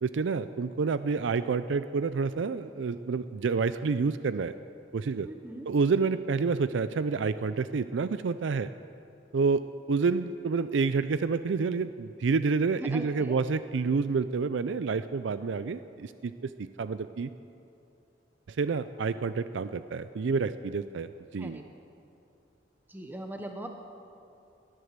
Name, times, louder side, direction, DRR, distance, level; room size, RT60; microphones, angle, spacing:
voice 1, 0.0-4.5 4.9-5.3 5.7-8.7 9.3-17.3 18.5-21.6, right 4 dB, 80° right, 13 dB, 0.4 m, -28 dB
voice 2, 5.2-5.7 12.7-13.4 21.4-21.6 22.9-23.7, right 1 dB, 10° right, 3 dB, 0.9 m, -40 dB
19.0 x 11.0 x 6.7 m, 2.7 s
head